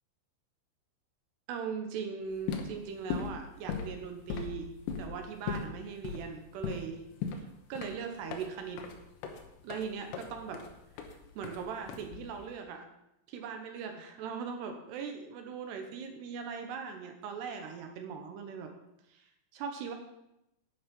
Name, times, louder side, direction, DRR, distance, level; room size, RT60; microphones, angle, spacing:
voice 1, 1.5-7.0 7.7-8.8 9.6-10.6 11.4-12.9 13.3-18.7 19.1-19.3 19.5-19.9, right 6 dB, 70° right, 5 dB, 2.7 m, -40 dB
sound 1, 2.3-12.5, left 6 dB, 70° left, 3.0 m, -39 dB
11.0 x 9.4 x 5.3 m, 0.86 s
omnidirectional pair, 5.9 m